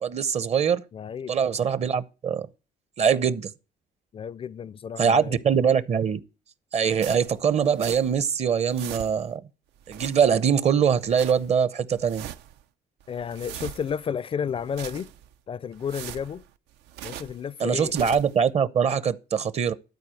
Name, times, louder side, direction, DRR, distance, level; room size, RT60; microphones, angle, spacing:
voice 1, 0.0-0.8 1.3-2.5 3.0-3.5 5.0-6.2 6.7-9.4 9.9-12.3 17.6-19.7, right 7 dB, 40° right, 0.8 m, -23 dB
voice 2, 0.9-1.3 4.1-5.4 13.1-15.1 15.5-16.5 17.0-17.9, left 7 dB, 35° left, 0.4 m, -32 dB
sound 1, 7.0-8.3 8.5-9.4 9.8-10.6 10.9-11.5 11.9-12.6 13.0-14.1 14.5-15.3 15.7-17.4 17.8-18.4, right 11 dB, 85° right, 0.6 m, -41 dB
12.0 x 4.5 x 7.7 m
cardioid pair, 110°, 17 cm